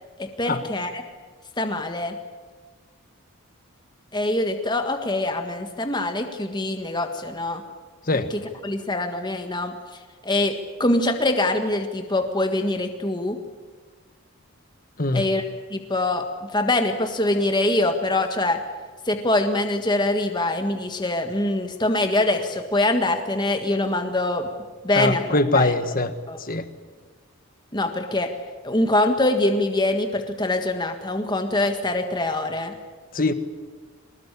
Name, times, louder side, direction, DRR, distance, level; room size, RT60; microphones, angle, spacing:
voice 1, 0.2-1.0 1.6-2.2 4.1-7.6 8.1-9.7 10.2-13.4 15.1-15.4 15.7-18.6 19.0-24.5 24.8-25.2 25.5-25.7 26.3-26.4 27.7-28.3 28.6-32.7, left 2 dB, 20° left, 6 dB, 1.6 m, -24 dB
voice 2, 24.9-26.1 26.4-26.6 33.1-33.3, left 2 dB, 40° left, 10 dB, 1.5 m, -22 dB
24.0 x 20.0 x 9.9 m, 1.4 s
head